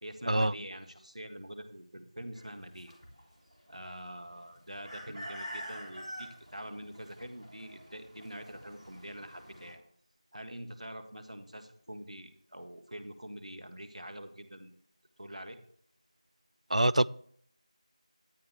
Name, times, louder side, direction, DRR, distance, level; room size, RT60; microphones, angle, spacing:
voice 1, 0.0-2.9 3.7-9.8 10.3-14.7 15.2-15.6, right 1 dB, 5° right, -15 dB, 0.5 m, -45 dB
sound 1, 2.3-9.7, equal, 15° left, 2.4 m, -47 dB
voice 2, 16.7-17.1, right 1 dB, 75° right, 20 dB, 0.4 m, -25 dB
11.0 x 9.5 x 3.5 m, 0.62 s
figure-of-eight pair, 180°, 4 cm